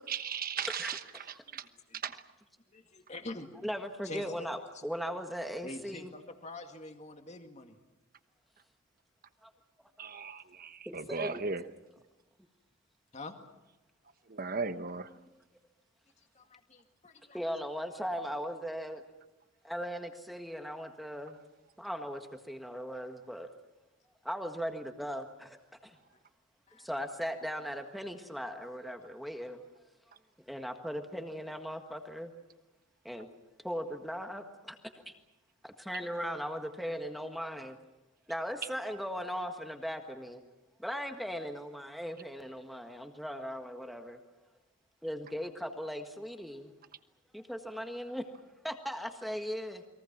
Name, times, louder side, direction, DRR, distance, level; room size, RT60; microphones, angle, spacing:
voice 1, 0.1-1.7 2.0-2.2 10.0-11.6 14.3-15.1, right 5 dB, 45° right, 10 dB, 1.1 m, -37 dB
voice 2, 2.7-3.5 4.0-4.5 4.7-4.9 5.6-7.8 13.1-13.4 16.3-17.4 26.7-26.9, left 2 dB, 30° left, 5 dB, 2.1 m, -45 dB
voice 3, 3.6-6.1 9.4-9.5 10.9-11.4 17.3-19.0 19.6-21.4 21.8-23.5 24.2-26.0 26.8-29.6 30.5-32.3 33.1-33.3 33.6-34.8 35.0-35.1 35.6-37.8 38.3-40.4 40.8-44.2 45.0-46.7 47.3-48.3 48.6-49.8, equal, ahead, 5 dB, 1.6 m, -38 dB
29.5 x 22.5 x 6.0 m, 1.0 s
head